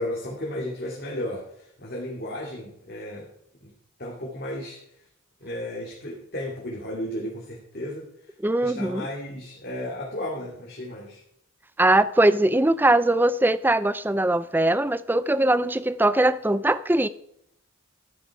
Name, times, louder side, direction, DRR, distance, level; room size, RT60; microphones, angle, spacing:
voice 1, 0.0-3.3 3.6-3.7 4.0-4.8 5.4-8.1 8.6-11.2, left 1 dB, 45° left, 2.6 m, -34 dB
voice 2, 8.4-9.1 11.8-17.1, right 1 dB, 10° right, 0.4 m, -21 dB
13.5 x 9.4 x 4.8 m
head